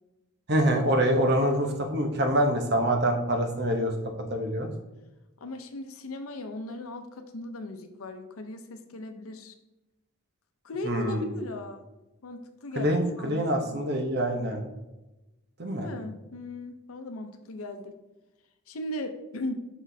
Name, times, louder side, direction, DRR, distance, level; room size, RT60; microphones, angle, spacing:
voice 1, 0.5-3.9 4.3-4.7 10.8-11.3 12.8-14.6 15.6-15.9, right 1 dB, 50° right, 3 dB, 0.8 m, -25 dB
voice 2, 5.4-9.5 10.6-11.8 12.2-13.8 15.8-17.9 18.7-19.5, left 2 dB, 85° left, 8 dB, 0.7 m, -38 dB
6.1 x 6.0 x 2.7 m, 1.0 s
head